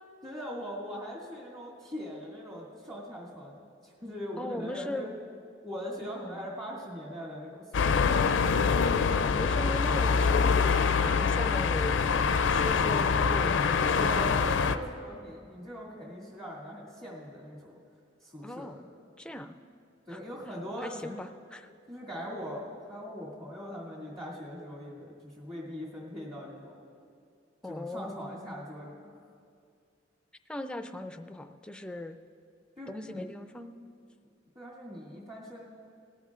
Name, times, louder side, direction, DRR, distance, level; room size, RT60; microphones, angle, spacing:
voice 1, 0.2-5.1 5.6-8.0 13.8-17.8 18.2-18.8 20.1-21.2 21.9-26.8 27.6-29.1 32.8-33.2 34.5-35.6, equal, 30° right, -7 dB, 2.2 m, -41 dB
voice 2, 4.4-5.1 6.0-6.4 9.3-12.0 12.5-14.3 18.4-18.8 19.2-19.6 20.1-20.2 20.8-21.7 27.6-28.7 30.5-32.2 32.9-33.7, left 1 dB, 5° left, 7 dB, 0.4 m, -39 dB
sound 1, 7.7-14.8, left 5 dB, 75° left, 0.4 m, -25 dB
18.5 x 14.0 x 2.4 m, 2.3 s
head